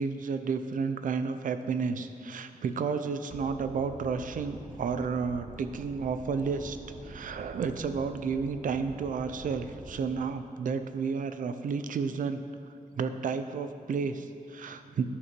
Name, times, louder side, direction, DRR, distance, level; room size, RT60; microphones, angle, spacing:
voice 1, 0.0-6.8 7.0-12.4 12.9-15.0, right 5 dB, 70° right, 10 dB, 0.6 m, -31 dB
sound 1, 3.3-10.0, right 2 dB, 30° right, 0.9 m, -46 dB
10.5 x 6.5 x 6.0 m, 2.2 s
wide cardioid pair, 165°, 14 cm